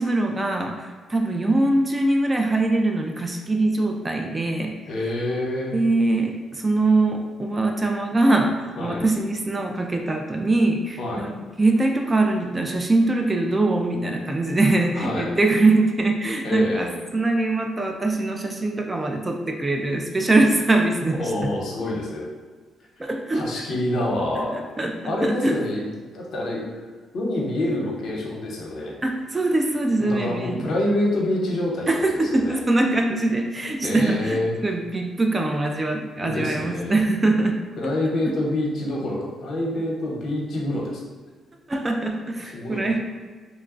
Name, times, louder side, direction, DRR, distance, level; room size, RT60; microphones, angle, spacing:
voice 1, 0.0-4.8 5.7-11.3 11.6-16.9 17.1-21.5 23.0-23.7 24.3-25.6 29.0-30.7 31.9-37.6 41.7-43.0, right 2 dB, 20° right, 3 dB, 0.4 m, -22 dB
voice 2, 4.8-5.8 8.8-9.1 11.0-11.2 15.0-15.3 16.4-16.9 21.2-22.3 23.3-24.6 25.0-25.9 26.1-26.9 27.1-28.9 30.0-32.6 33.8-34.6 36.2-37.0 37.8-41.0 42.5-42.9, left 1 dB, 65° left, -2 dB, 0.9 m, -26 dB
3.0 x 2.2 x 3.7 m, 1.5 s
cardioid pair, 90°, 0 cm